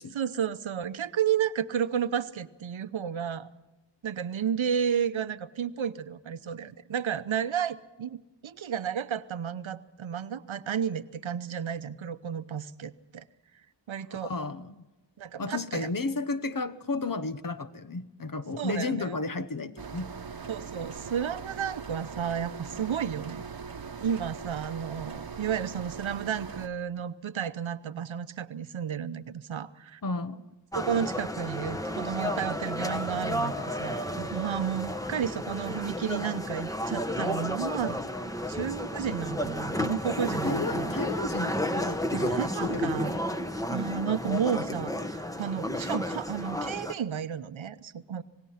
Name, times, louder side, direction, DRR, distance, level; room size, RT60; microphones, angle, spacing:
voice 1, 0.1-3.5 4.0-13.3 13.9-14.3 15.2-15.9 18.6-19.1 20.5-23.5 24.0-30.0 30.7-33.5 33.8-38.0 38.5-41.0 42.1-43.2 43.7-48.2, right 8 dB, 80° right, 0.9 m, -32 dB
voice 2, 14.2-14.8 15.4-20.1 30.0-30.4 40.4-43.3, left 3 dB, 45° left, 1.1 m, -33 dB
sound 1, 19.8-26.7, right 5 dB, 50° right, 1.0 m, -41 dB
sound 2, 30.7-46.9, left 1 dB, 5° left, 1.0 m, -32 dB
26.5 x 19.0 x 5.7 m
wide cardioid pair, 95°, 46 cm